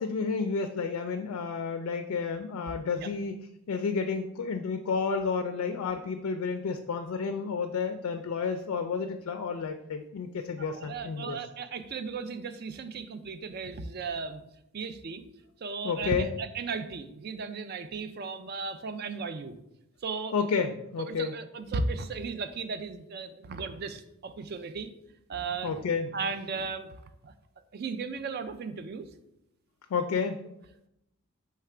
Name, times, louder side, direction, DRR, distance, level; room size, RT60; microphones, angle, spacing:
voice 1, 0.0-3.3 3.7-11.4 15.8-16.3 20.3-21.3 25.6-26.1 29.9-30.4, left 5 dB, 75° left, 6 dB, 0.3 m, -31 dB
voice 2, 10.6-14.4 14.7-15.2 15.6-19.6 20.0-20.3 21.0-24.9 25.3-25.9 26.1-27.3 27.7-29.1, right 4 dB, 45° right, 10 dB, 0.3 m, -36 dB
3.3 x 3.2 x 4.8 m, 0.84 s
head